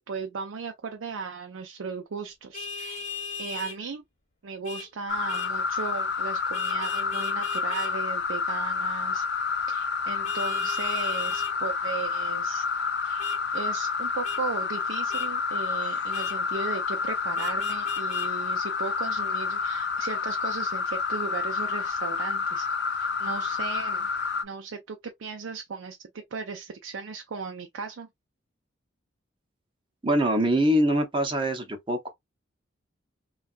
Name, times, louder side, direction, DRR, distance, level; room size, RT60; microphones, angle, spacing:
voice 1, 0.0-3.0 3.4-4.0 4.4-9.3 9.6-12.7 13.0-24.1 24.4-28.1, right 5 dB, 85° right, 0.5 m, -37 dB
Vehicle horn car horn honking, 2.5-3.8 4.6-4.9 5.3-5.5 6.5-7.9 10.2-11.5 13.2-13.4 14.2-14.4 15.1-15.3 16.1-16.4 17.4-18.3, left 6 dB, 35° left, 0.8 m, -37 dB
sound 1, 5.1-24.4, left 5 dB, 55° left, 0.4 m, -29 dB
voice 2, 30.0-32.1, equal, 25° right, 0.7 m, -23 dB
3.4 x 2.4 x 2.4 m
head